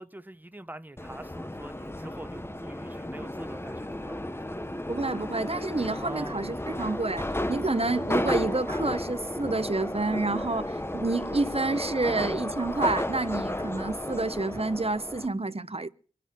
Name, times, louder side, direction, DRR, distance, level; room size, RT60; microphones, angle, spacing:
voice 1, 0.0-4.8 6.0-6.5, right 1 dB, 10° right, 0.9 m, -44 dB
Subway metro underground, 1.0-15.3, left 1 dB, 15° left, 0.9 m, -33 dB
voice 2, 4.9-15.9, right 3 dB, 40° right, 1.0 m, -29 dB
25.0 x 8.5 x 5.9 m
wide cardioid pair, 50°, 15 cm